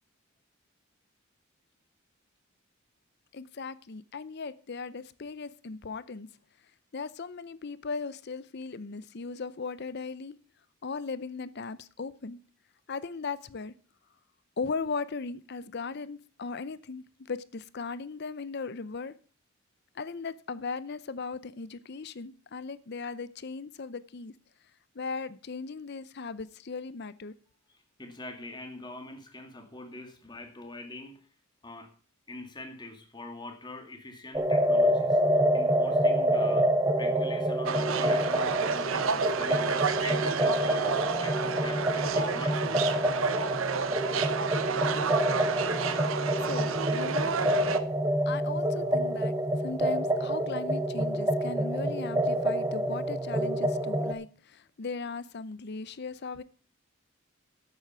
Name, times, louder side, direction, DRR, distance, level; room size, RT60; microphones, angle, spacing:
voice 1, 3.3-6.3 6.9-10.4 10.8-12.4 12.9-13.7 14.6-19.2 19.9-24.3 24.9-27.4 46.4-47.7 48.3-49.4 49.6-56.4, left 4 dB, 50° left, 0.6 m, -38 dB
voice 2, 28.0-31.3 31.6-31.9 32.3-35.2 35.5-36.7 37.0-40.9 41.2-43.1, left 2 dB, 20° left, 2.1 m, -44 dB
sound 1, 34.3-54.1, right 1 dB, 15° right, 0.8 m, -27 dB
sound 2, 37.7-47.8, right 5 dB, 70° right, 0.9 m, -30 dB
11.5 x 8.2 x 5.7 m
head